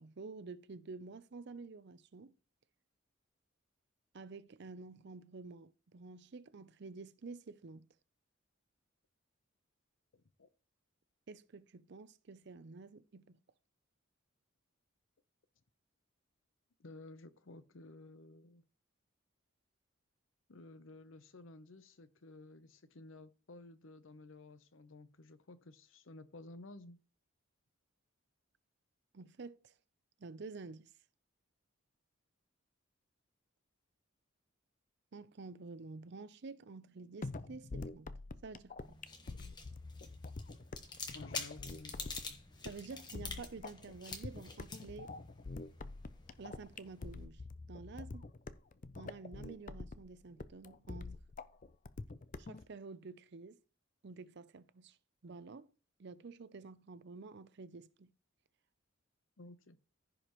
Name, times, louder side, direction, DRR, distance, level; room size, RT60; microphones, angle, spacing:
voice 1, 0.0-2.4 4.1-7.9 11.3-13.4 29.1-29.7 30.2-30.9 35.1-38.1 38.4-39.0 42.6-45.2 46.4-47.4 47.7-48.3 48.9-51.1 52.4-53.6 54.0-55.0 55.2-55.7 56.0-58.1, right 4 dB, 55° right, 0.5 m, -50 dB
voice 2, 10.1-10.5 16.8-18.6 20.5-27.0 41.1-42.4 59.4-59.8, left 2 dB, 70° left, 0.8 m, -54 dB
sound 1, 37.2-52.6, left 3 dB, 40° left, 0.5 m, -46 dB
sound 2, 38.8-47.3, left 4 dB, 20° left, 1.2 m, -48 dB
15.0 x 5.0 x 3.0 m
head